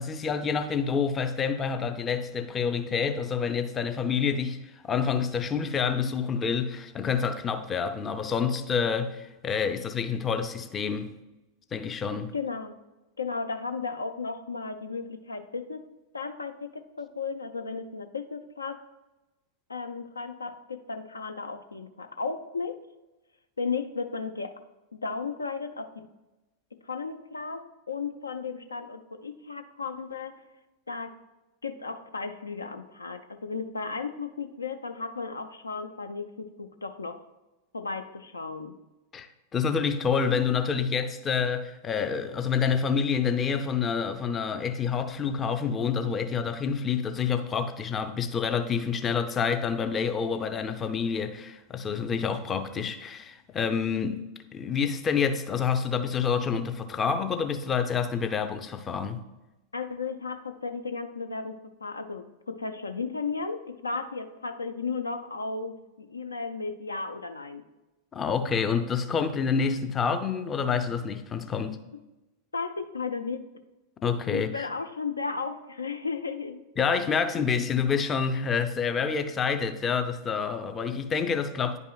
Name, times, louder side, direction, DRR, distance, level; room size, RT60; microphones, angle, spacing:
voice 1, 0.0-11.1 11.7-12.3 39.1-54.2 54.5-59.2 68.1-71.8 74.0-74.7 76.8-81.8, left 6 dB, 25° left, 0.5 m, -28 dB
voice 2, 12.3-12.7 13.2-15.8 16.1-18.8 19.7-22.8 23.6-24.6 24.9-25.9 26.8-30.3 30.9-31.1 31.6-37.2 37.7-38.7 59.7-67.7 72.5-73.4 74.3-76.6, left 4 dB, 75° left, 0.4 m, -34 dB
10.0 x 5.4 x 2.3 m
figure-of-eight pair, 90°, 0 cm